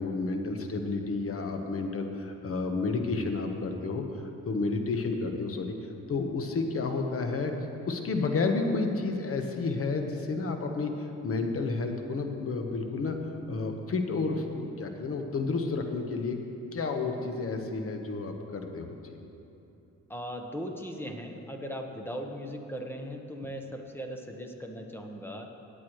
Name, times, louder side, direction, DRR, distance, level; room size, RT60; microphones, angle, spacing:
voice 1, 0.0-4.0 4.5-5.7 6.1-7.5 7.9-13.2 13.5-16.4 16.7-18.8, left 3 dB, 50° left, 4 dB, 1.2 m, -31 dB
voice 2, 20.1-25.5, equal, 5° left, 3 dB, 1.1 m, -38 dB
18.0 x 8.4 x 3.1 m, 2.9 s
cardioid pair, 90°, 30 cm